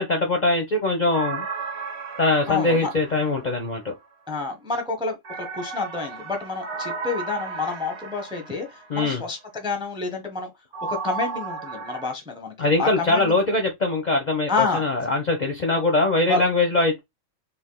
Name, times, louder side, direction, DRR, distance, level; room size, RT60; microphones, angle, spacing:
voice 1, 0.0-1.5 2.2-3.9 8.9-9.2 12.6-17.0, left 2 dB, 50° left, 0.5 m, -22 dB
sound 1, 1.1-4.0 5.2-9.1 10.7-12.1, right 4 dB, 55° right, 1.1 m, -34 dB
voice 2, 2.5-2.9 4.3-10.5 10.8-13.4 14.5-14.8 16.3-16.4, left 3 dB, 5° right, 0.5 m, -29 dB
3.3 x 2.4 x 3.7 m
omnidirectional pair, 1.5 m